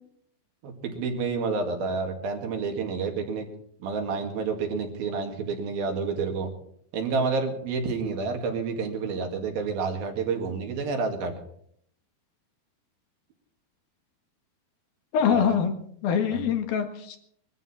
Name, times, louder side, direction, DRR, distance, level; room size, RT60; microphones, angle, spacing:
voice 1, 0.6-3.5 3.8-6.5 6.9-11.3 15.3-15.5 16.3-16.4, right 4 dB, 70° right, 3 dB, 3.9 m, -29 dB
voice 2, 15.1-15.7 16.0-17.2, left 7 dB, 75° left, 5 dB, 3.5 m, -24 dB
22.5 x 14.5 x 4.3 m, 0.66 s
omnidirectional pair, 4.4 m